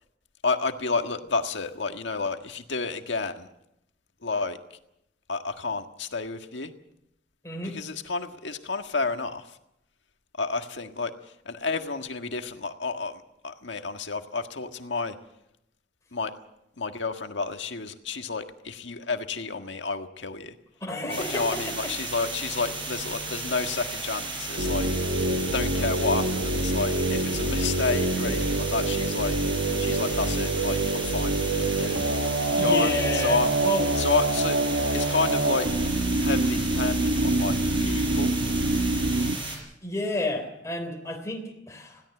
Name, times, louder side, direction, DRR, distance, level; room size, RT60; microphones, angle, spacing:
voice 1, 0.4-3.5 4.2-4.6 5.3-6.7 7.7-9.6 10.4-11.1 11.4-15.1 16.1-16.3 16.8-20.5 21.1-24.9 25.5-29.4 29.8-32.0 32.6-33.5 34.0-34.6 34.9-35.7 36.2-38.3, left 4 dB, 80° left, 6 dB, 1.6 m, -30 dB
voice 2, 7.4-7.8 20.8-21.9 32.5-33.9 39.8-42.0, left 2 dB, 15° left, 2 dB, 3.4 m, -31 dB
sound 1, 21.1-39.6, right 3 dB, 30° right, 6.0 m, -34 dB
sound 2, 24.6-39.4, right 2 dB, 70° right, 1.3 m, -26 dB
21.0 x 16.5 x 7.8 m, 0.83 s
head